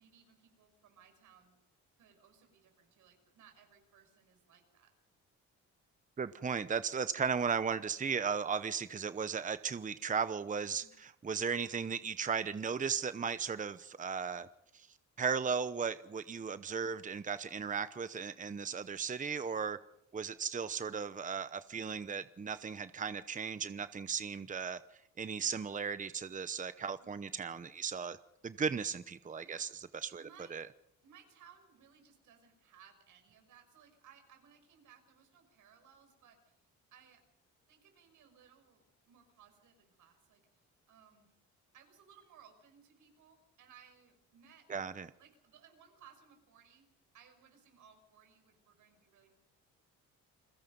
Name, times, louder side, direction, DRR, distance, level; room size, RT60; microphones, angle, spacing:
voice 1, 0.0-1.6 2.0-4.9 10.7-10.9 27.0-27.2 29.4-29.7 30.2-30.6 31.0-36.6 36.9-37.2 37.7-40.6 40.9-41.3 41.7-44.7 45.2-46.9 47.1-49.3, right 7 dB, 80° right, 5 dB, 6.0 m, -62 dB
voice 2, 6.2-14.5 14.7-14.9 15.2-19.8 20.1-24.8 25.2-28.2 28.4-30.2 30.5-30.7 44.7-45.1, right 6 dB, 25° right, 13 dB, 0.9 m, -36 dB
29.5 x 21.0 x 5.4 m, 0.79 s
cardioid pair, 90°, 30 cm